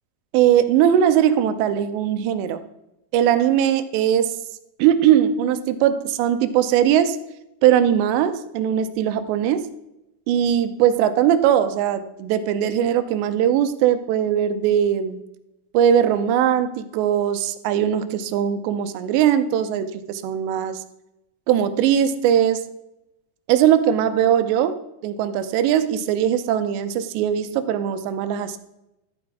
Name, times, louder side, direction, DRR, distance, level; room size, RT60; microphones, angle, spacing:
voice 1, 0.3-2.6 3.1-4.4 4.8-7.2 7.6-9.7 10.3-15.2 15.7-20.8 21.5-22.6 23.5-28.6, right 10 dB, 85° right, 11 dB, 2.8 m, -20 dB
12.0 x 8.3 x 3.5 m, 0.88 s
omnidirectional pair, 5.0 m